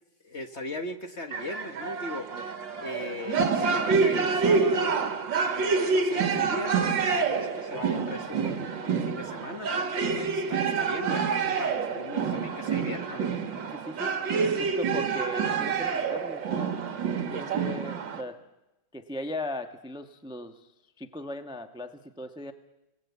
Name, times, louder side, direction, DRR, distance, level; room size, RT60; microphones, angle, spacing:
voice 1, 0.2-2.3 2.8-4.9 5.5-13.3, left 1 dB, 40° left, 7 dB, 1.4 m, -38 dB
sound 1, 1.3-18.2, right 5 dB, 65° right, 2.3 m, -27 dB
voice 2, 13.7-14.2 14.4-16.7 17.1-18.4 18.9-20.7 21.0-22.5, left 1 dB, 5° right, 7 dB, 0.8 m, -38 dB
29.5 x 19.0 x 8.2 m, 0.97 s
omnidirectional pair, 2.2 m